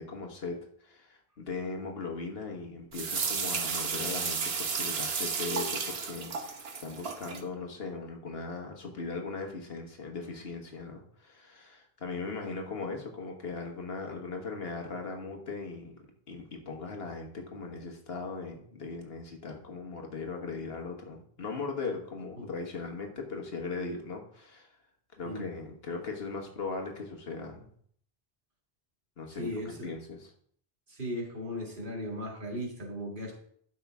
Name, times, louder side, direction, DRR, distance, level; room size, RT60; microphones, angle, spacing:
voice 1, 0.0-16.0 16.3-24.7 25.1-27.7 29.2-30.3, left 4 dB, 75° left, 2 dB, 1.6 m, -39 dB
sound 1, 2.9-7.4, right 5 dB, 75° right, 1.2 m, -33 dB
voice 2, 29.4-29.9 30.9-33.3, equal, 55° right, -1 dB, 2.2 m, -37 dB
12.5 x 5.6 x 3.5 m, 0.63 s
omnidirectional pair, 1.0 m